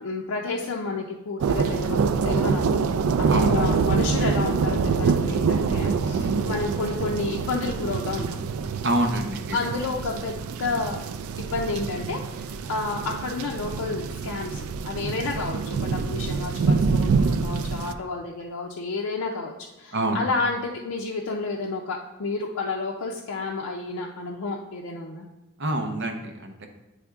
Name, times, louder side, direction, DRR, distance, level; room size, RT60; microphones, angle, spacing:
voice 1, 0.0-2.0 2.2-2.9 3.2-8.4 9.5-11.0 11.4-19.5 19.8-25.3, left 3 dB, 85° left, -1 dB, 0.5 m, -30 dB
sound 1, 1.4-17.9, right 5 dB, 85° right, 0.4 m, -25 dB
voice 2, 3.3-3.7 6.1-6.4 8.8-9.6 19.9-20.2 25.6-26.7, right 1 dB, 55° right, 4 dB, 0.8 m, -27 dB
9.2 x 3.5 x 3.5 m, 1.0 s
head